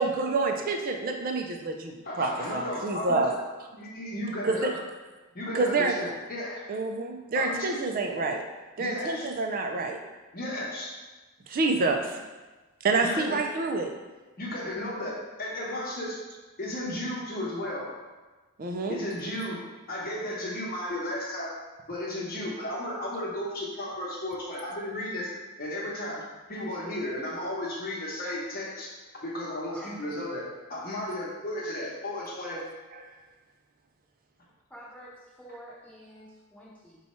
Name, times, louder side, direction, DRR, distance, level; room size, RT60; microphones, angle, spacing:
voice 1, 0.0-3.3 4.4-4.7 5.5-5.9 6.7-8.4 8.8-10.0 11.5-12.2 12.8-13.9 18.6-19.0, right 3 dB, 40° right, 4 dB, 0.4 m, -27 dB
voice 2, 2.0-3.3 3.8-4.8 5.3-6.6 7.3-7.8 8.8-9.3 10.3-10.9 13.0-13.4 14.4-16.2 16.6-17.9 18.9-19.6 19.9-21.6 21.9-25.3 25.6-28.9 29.2-32.7, left 1 dB, 40° left, -4 dB, 0.9 m, -34 dB
voice 3, 34.7-37.0, equal, 5° left, -8 dB, 0.9 m, -47 dB
4.1 x 2.3 x 4.2 m, 1.2 s
head